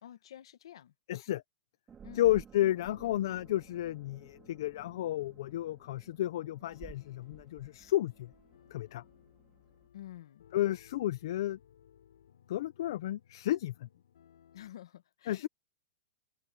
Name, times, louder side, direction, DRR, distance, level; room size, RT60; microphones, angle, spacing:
voice 1, 0.0-0.9 2.0-2.3 9.9-10.4 14.5-15.5, left 12 dB, 65° left, 1.6 m, -49 dB
voice 2, 1.1-1.4 2.1-8.3 8.7-9.0 10.5-11.6 12.5-13.9 15.3-15.5, left 14 dB, 50° left, 0.6 m, -32 dB
sound 1, 1.9-9.9, right 7 dB, 10° right, 2.5 m, -56 dB
sound 2, 2.9-14.7, left 9 dB, 85° left, 4.2 m, -62 dB
open air
supercardioid pair, 175°, 3 cm